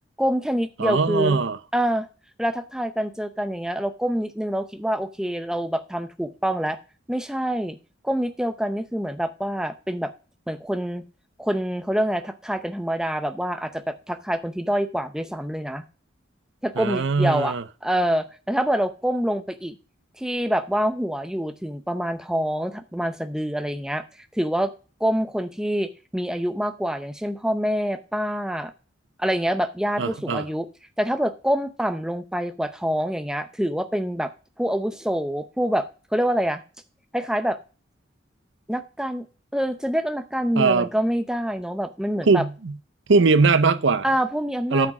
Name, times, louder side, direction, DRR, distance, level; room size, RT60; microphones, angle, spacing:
voice 1, 0.2-1.4 1.7-2.1 2.4-6.8 7.1-7.8 8.0-10.1 10.5-11.0 11.4-15.8 16.6-17.6 17.8-19.7 20.2-24.7 25.0-28.7 29.2-30.7 31.0-34.3 34.6-35.9 36.1-36.6 37.1-37.6 38.7-39.3 39.5-42.4 44.0-44.9, equal, 5° right, 0.6 m, -26 dB
voice 2, 0.8-1.6 16.8-17.6 30.0-30.5 40.6-40.9 42.3-42.8 43.1-44.0 44.7-44.9, right 4 dB, 70° right, 0.6 m, -20 dB
9.0 x 6.1 x 4.8 m
head